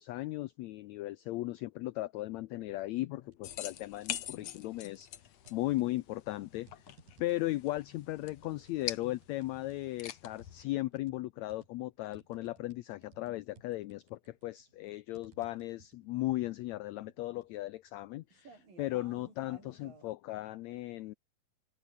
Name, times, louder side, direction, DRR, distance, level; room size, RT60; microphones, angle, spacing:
voice 1, 0.0-5.1 5.5-6.9 7.2-21.1, left 17 dB, 85° left, 1.6 m, -37 dB
sound 1, 3.2-3.6 4.0-4.9 5.4-20.1, right 4 dB, 85° right, 9.0 m, -60 dB
sound 2, 3.4-10.6, left 11 dB, 60° left, 2.2 m, -45 dB
omnidirectional pair, 3.9 m